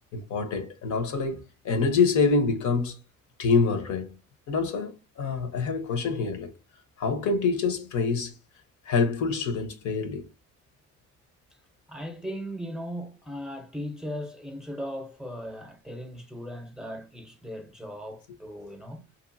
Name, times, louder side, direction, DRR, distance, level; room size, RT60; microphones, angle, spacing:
voice 1, 0.1-3.0 3.4-4.1 4.5-6.5 7.0-8.3 8.9-10.3, left 4 dB, 75° left, 0.8 m, -26 dB
voice 2, 11.9-19.0, equal, ahead, 0.6 m, -38 dB
2.9 x 2.4 x 2.5 m
cardioid pair, 90°, 30 cm